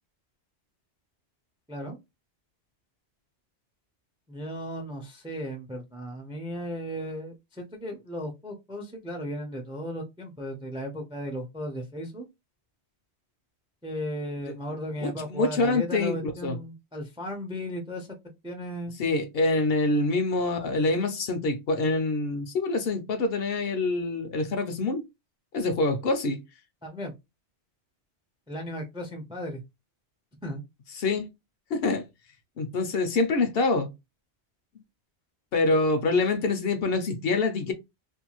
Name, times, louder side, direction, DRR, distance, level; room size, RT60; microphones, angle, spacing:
voice 1, 4.3-12.3 13.8-18.1 18.4-18.9 26.8-27.1 28.5-29.6 30.4-30.6, equal, 10° right, 0.3 m, -35 dB
voice 2, 15.0-16.6 19.0-25.0 25.5-26.4 30.9-31.3 31.7-32.0 32.6-33.9 35.5-37.7, left 3 dB, 65° left, 0.8 m, -26 dB
2.6 x 2.3 x 2.9 m
omnidirectional pair, 1.1 m